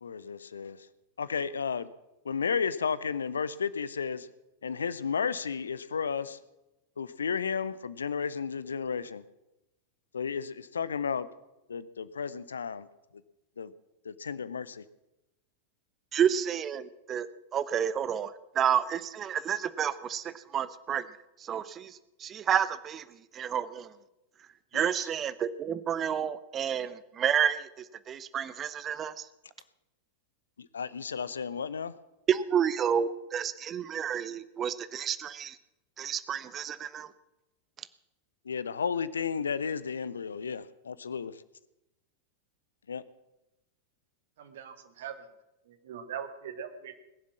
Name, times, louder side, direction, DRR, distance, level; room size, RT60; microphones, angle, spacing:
voice 1, 0.0-0.9 1.2-1.9 2.2-4.3 4.6-6.4 7.0-9.2 10.1-11.3 11.7-12.9 13.6-13.7 14.0-14.8 24.7-25.1 30.6-31.9 38.5-41.4 42.9-43.0, left 6 dB, 70° left, 17 dB, 0.6 m, -33 dB
voice 2, 16.1-21.1 21.4-23.0 23.3-23.9 24.7-29.2 32.3-35.6 36.0-37.1, right 8 dB, 25° right, 15 dB, 0.7 m, -30 dB
voice 3, 44.4-45.1 45.8-46.9, right 8 dB, 55° right, 9 dB, 1.6 m, -40 dB
20.5 x 7.4 x 7.3 m, 0.95 s
figure-of-eight pair, 90°, 0 cm